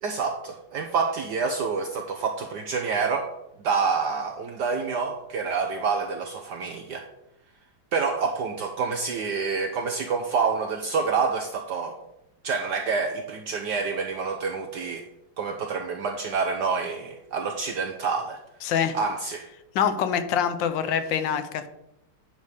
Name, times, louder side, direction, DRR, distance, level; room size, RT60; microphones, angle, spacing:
voice 1, 0.0-3.3 3.6-7.1 7.9-12.0 12.4-15.1 15.4-18.4 18.9-19.5, right 5 dB, 70° right, 4 dB, 1.1 m, -27 dB
voice 2, 18.6-19.0 19.7-21.7, left 8 dB, 70° left, 10 dB, 1.3 m, -25 dB
9.4 x 3.6 x 6.4 m, 0.87 s
omnidirectional pair, 2.3 m